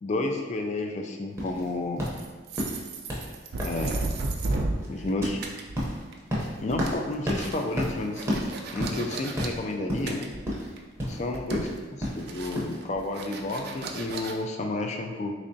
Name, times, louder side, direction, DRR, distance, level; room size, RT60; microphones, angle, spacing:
voice 1, 0.0-2.0 3.6-4.1 4.9-5.4 6.6-8.4 8.7-10.3 11.2-15.3, left 2 dB, 35° left, 3 dB, 0.3 m, -31 dB
boot steps on concrete foley, 1.4-12.8, equal, 15° right, 0.6 m, -33 dB
sound 1, 2.0-5.1 5.4-6.3 6.6-9.5 10.1-10.9 11.2-11.8 12.3-14.3, right 2 dB, 55° right, 0.4 m, -34 dB
3.6 x 3.2 x 2.6 m, 1.3 s
head